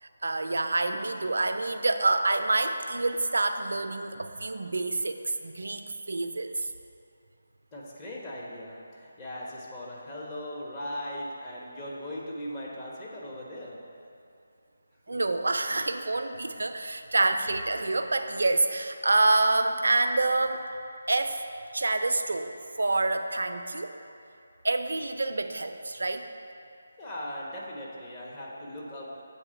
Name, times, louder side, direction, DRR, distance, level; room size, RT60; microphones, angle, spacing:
voice 1, 0.0-6.7 15.1-20.7 21.1-21.4 21.7-23.9 24.6-26.3, right 2 dB, 70° right, 7 dB, 0.4 m, -27 dB
voice 2, 7.7-13.8 15.1-15.2 27.0-29.2, left 1 dB, 20° left, -6 dB, 1.1 m, -39 dB
7.7 x 3.6 x 5.1 m, 2.6 s
figure-of-eight pair, 155°, 0 cm